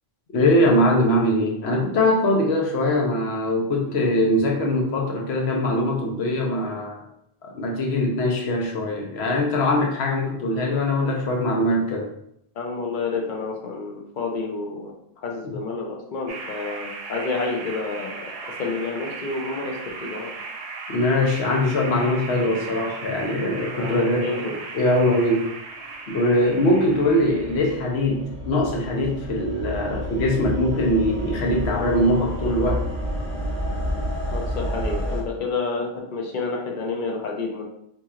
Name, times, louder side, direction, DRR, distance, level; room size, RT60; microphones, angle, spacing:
voice 1, 0.3-7.0 7.4-12.1 15.4-15.5 20.9-24.5 24.7-25.5 26.1-32.8, left 1 dB, 90° left, 0 dB, 1.0 m, -22 dB
voice 2, 12.5-18.3 18.6-20.3 23.8-24.6 34.3-37.6, left 4 dB, 55° left, 0 dB, 0.8 m, -29 dB
sound 1, 16.3-27.7, right 4 dB, 70° right, 0.8 m, -37 dB
sound 2, 25.5-35.2, equal, ahead, 1.1 m, -30 dB
4.2 x 2.8 x 2.4 m, 0.73 s
omnidirectional pair, 1.1 m